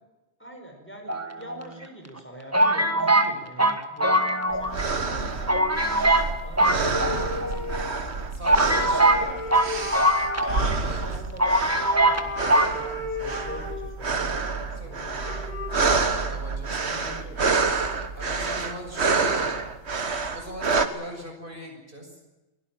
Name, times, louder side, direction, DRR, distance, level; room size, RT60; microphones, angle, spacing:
voice 1, 0.4-7.2 8.7-10.1 10.5-15.5 16.3-17.4 18.2-19.0 19.2-19.5, right 1 dB, 10° left, 3 dB, 5.0 m, -44 dB
sound 1, 1.1-1.8 2.5-4.8 5.1-5.2 5.5-6.3 6.6-7.5 8.1-8.2 8.4-10.7 11.0-11.1 11.4-12.2 12.5-12.7, right 1 dB, 15° right, 1.6 m, -22 dB
sound 2, 4.5-20.9, right 4 dB, 70° right, 1.9 m, -28 dB
voice 2, 6.6-7.7 8.3-9.7 10.8-11.2 14.8-15.0 15.4-17.5 18.1-19.5 20.3-22.2, equal, 50° right, 2 dB, 6.5 m, -41 dB
sound 3, 6.8-8.1 8.6-10.7 11.6-14.0 14.7-14.8 15.0-15.7, left 2 dB, 70° left, 5.0 m, -34 dB
23.5 x 17.5 x 9.0 m, 1.1 s
omnidirectional pair, 1.2 m